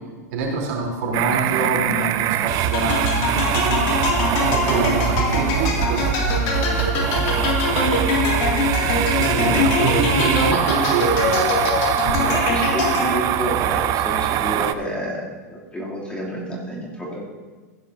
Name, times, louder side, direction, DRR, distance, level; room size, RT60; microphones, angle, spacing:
voice 1, 0.3-3.8 4.4-8.0 9.1-11.6 12.0-12.2, right 4 dB, 60° right, -2 dB, 3.3 m, -26 dB
sound 1, 1.1-14.7, right 10 dB, 40° right, 0.5 m, -23 dB
sound 2, 2.7-13.4, left 4 dB, 50° left, 2.3 m, -23 dB
voice 2, 12.2-17.3, equal, 10° left, -4 dB, 2.6 m, -30 dB
15.5 x 9.8 x 2.7 m, 1.4 s
hypercardioid pair, 110°, 9 cm